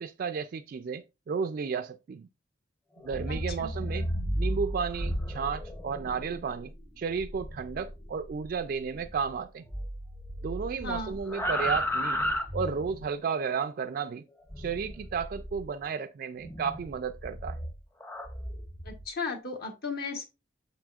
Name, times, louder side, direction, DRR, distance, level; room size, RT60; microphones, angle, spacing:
voice 1, 0.0-2.3 3.0-4.1 4.3-6.7 7.0-9.6 10.4-12.3 12.5-14.2 14.6-17.6, right 6 dB, 50° right, 0.3 m, -33 dB
sound 1, 3.0-9.4 9.7-13.1 14.5-15.8 16.4-19.0, equal, 15° left, 0.7 m, -34 dB
voice 2, 3.3-3.7 10.8-11.2 18.8-20.3, left 3 dB, 55° left, 1.3 m, -35 dB
6.6 x 6.1 x 2.4 m
head